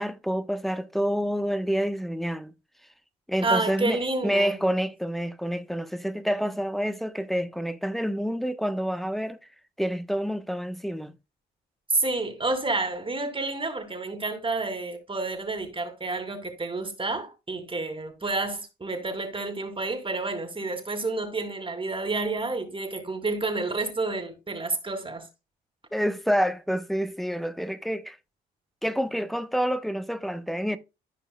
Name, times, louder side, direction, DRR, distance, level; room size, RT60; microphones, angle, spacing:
voice 1, 0.0-2.5 3.3-9.4 9.8-11.1 25.9-28.2 28.8-30.8, equal, ahead, 1.0 m, -28 dB
voice 2, 3.4-4.6 11.9-25.3, right 3 dB, 25° right, 2.5 m, -29 dB
14.0 x 5.3 x 2.2 m
hypercardioid pair, 55°, 21 cm